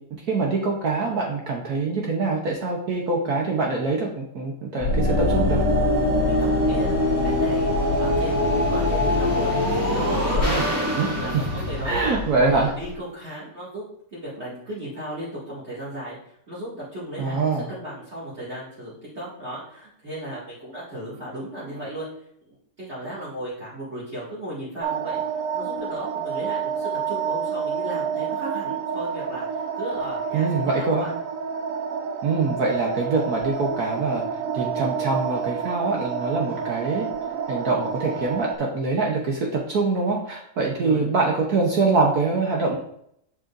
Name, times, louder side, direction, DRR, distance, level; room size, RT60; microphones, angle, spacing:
voice 1, 0.2-5.6 10.4-10.7 11.0-11.4 11.8-12.7 17.2-17.7 21.6-21.7 30.3-31.1 32.2-34.2 34.5-37.1 37.5-42.8, right 3 dB, 60° right, -1 dB, 1.3 m, -24 dB
sound 1, 4.8-12.9, left 1 dB, 10° right, 1.8 m, -23 dB
voice 2, 6.3-7.7 8.0-12.2 12.5-13.8 14.1-16.2 16.5-22.1 22.5-30.5 30.8-31.1 36.5-36.6 40.7-41.0, right 1 dB, 35° right, -9 dB, 2.5 m, -35 dB
sound 2, 24.8-38.5, right 6 dB, 80° right, 0.7 m, -29 dB
7.4 x 6.6 x 2.5 m, 0.71 s
omnidirectional pair, 2.0 m